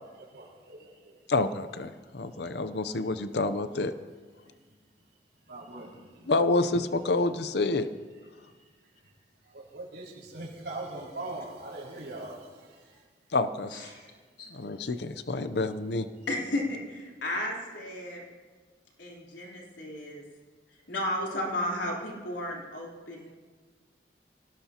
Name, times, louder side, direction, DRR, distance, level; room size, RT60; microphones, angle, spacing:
voice 1, 0.0-1.2 4.4-4.5 5.5-6.3 9.4-12.8, right 2 dB, 75° right, -3 dB, 4.7 m, -41 dB
voice 2, 1.3-3.9 6.3-7.9 13.3-13.7 14.5-16.1, left 3 dB, 70° left, 11 dB, 0.7 m, -28 dB
voice 3, 13.7-14.1 14.4-14.5 16.3-18.2 19.0-20.2 20.7-23.3, left 1 dB, 85° left, -2 dB, 3.6 m, -34 dB
24.5 x 18.0 x 2.9 m, 1.5 s
head